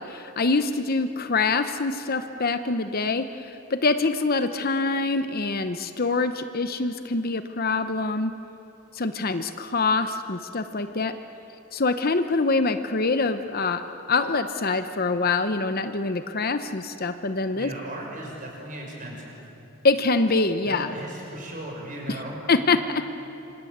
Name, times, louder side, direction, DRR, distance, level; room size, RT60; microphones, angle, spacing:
voice 1, 0.0-8.3 8.9-11.1 11.7-13.8 14.1-17.7 19.8-20.9 22.1-22.2 22.5-22.8, left 3 dB, 40° left, 9 dB, 0.9 m, -25 dB
voice 2, 17.5-19.4 20.6-22.5, right 1 dB, 35° right, -1 dB, 6.6 m, -37 dB
27.0 x 25.5 x 8.1 m, 3.0 s
head